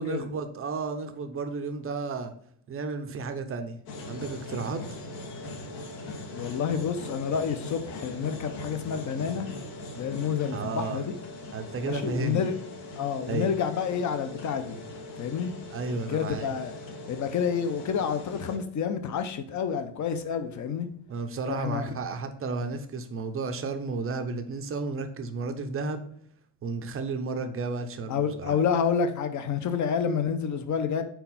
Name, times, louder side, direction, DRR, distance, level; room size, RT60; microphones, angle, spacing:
voice 1, 0.0-2.3 2.7-3.8 4.0-4.8 10.5-11.0 11.5-12.4 13.3-13.5 15.7-16.6 21.1-26.0 26.6-28.6, right 4 dB, 30° right, 0.6 m, -32 dB
sound 1, 3.9-18.6, left 2 dB, 70° left, 1.5 m, -40 dB
voice 2, 6.3-9.5 10.0-11.1 11.9-12.5 13.0-14.8 15.2-15.5 16.1-16.7 17.1-20.9 21.5-21.9 28.1-31.0, left 7 dB, 35° left, 0.7 m, -29 dB
4.6 x 4.5 x 5.6 m
cardioid pair, 145°, 49 cm